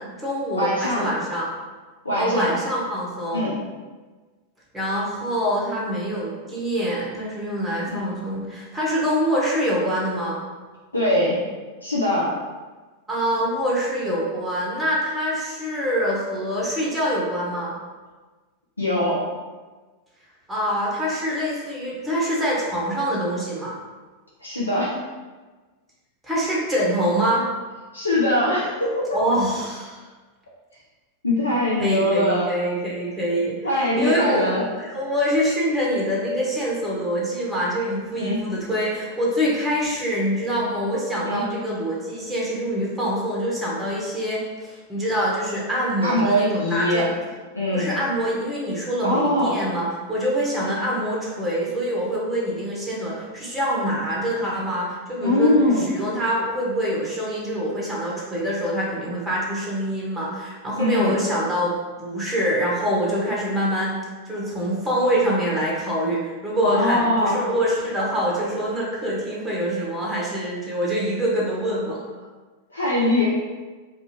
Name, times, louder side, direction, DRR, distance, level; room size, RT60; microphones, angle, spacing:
voice 1, 0.0-1.5 2.1-3.4 4.7-10.4 13.1-17.7 20.5-23.7 26.2-27.5 29.1-30.0 31.8-33.6 34.0-47.0 47.7-63.9 64.3-72.0, equal, 10° right, -5 dB, 0.7 m, -25 dB
voice 2, 0.5-1.1 2.0-2.5 3.3-3.6 10.9-11.5 11.8-12.4 18.8-19.3 24.4-24.9 27.9-29.2 31.2-32.5 33.6-34.7 38.1-38.5 41.2-41.4 46.0-47.1 47.5-47.9 49.0-49.6 50.6-50.8 55.2-55.9 60.8-61.1 66.6-67.5 72.7-73.3, left 1 dB, 80° left, -6 dB, 0.4 m, -22 dB
2.4 x 2.3 x 3.0 m, 1.3 s
figure-of-eight pair, 90°, 0 cm